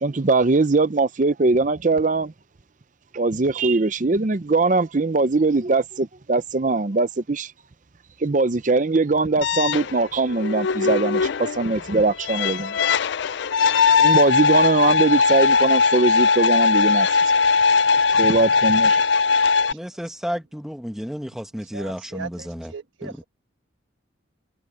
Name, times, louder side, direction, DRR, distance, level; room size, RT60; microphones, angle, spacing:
voice 1, 0.0-2.3 3.1-7.5 8.2-12.7 14.0-17.1 18.2-19.0, right 3 dB, 40° right, 0.6 m, -21 dB
sound 1, 9.4-19.7, left 5 dB, 65° left, 0.4 m, -19 dB
voice 2, 19.7-22.7 23.0-23.1, equal, ahead, 1.4 m, -32 dB
voice 3, 21.7-23.2, right 4 dB, 75° right, 1.5 m, -38 dB
head